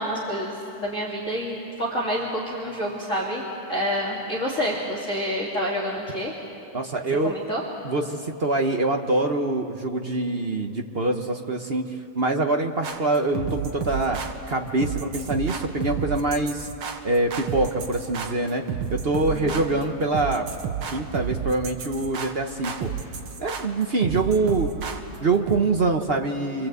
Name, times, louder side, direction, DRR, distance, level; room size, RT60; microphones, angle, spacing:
voice 1, 0.0-6.3 7.2-7.6 19.3-19.6, equal, 35° left, -5 dB, 2.9 m, -28 dB
voice 2, 6.7-7.3 7.8-14.2 14.5-16.7 17.0-18.6 18.9-20.5 20.9-22.9 23.4-24.7 25.2-26.7, right 2 dB, 45° right, 4 dB, 0.7 m, -24 dB
sound 1, 12.8-25.6, right 7 dB, 75° right, 2.3 m, -32 dB
28.0 x 24.0 x 8.1 m, 2.8 s
omnidirectional pair, 2.4 m